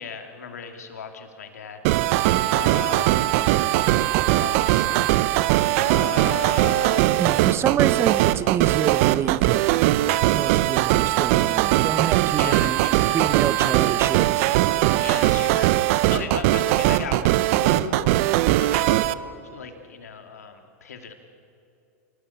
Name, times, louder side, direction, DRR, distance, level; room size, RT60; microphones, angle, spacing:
voice 1, 0.0-3.4 4.2-4.9 5.8-7.5 12.4-13.3 13.6-14.1 15.0-15.8 16.1-18.1 18.6-19.0 19.4-21.1, left 6 dB, 90° left, 5 dB, 2.7 m, -36 dB
sound 1, 1.8-19.1, right 15 dB, 60° right, 0.8 m, -20 dB
voice 2, 7.2-9.6 10.0-12.8 13.1-14.5, right 8 dB, 30° right, 14 dB, 1.1 m, -27 dB
28.0 x 19.0 x 8.6 m, 2.5 s
hypercardioid pair, 105°, 8 cm